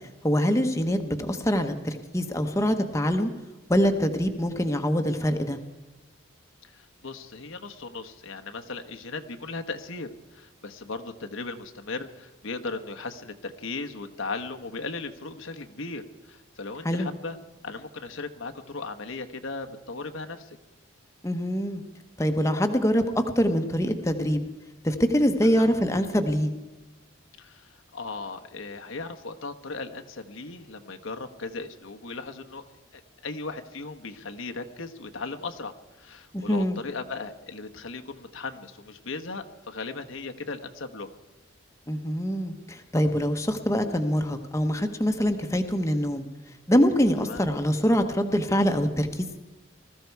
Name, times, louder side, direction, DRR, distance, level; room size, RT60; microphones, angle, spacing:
voice 1, 0.2-3.3 3.7-5.6 16.8-17.1 21.2-21.8 22.2-24.4 24.8-26.5 36.3-36.8 41.9-46.3 46.7-49.3, equal, 15° left, 5 dB, 1.0 m, -24 dB
voice 2, 6.6-17.4 17.6-20.6 25.4-25.6 27.4-32.6 32.9-41.1 47.3-47.4, left 3 dB, 75° left, 5 dB, 1.2 m, -37 dB
20.0 x 14.0 x 4.6 m, 1.2 s
head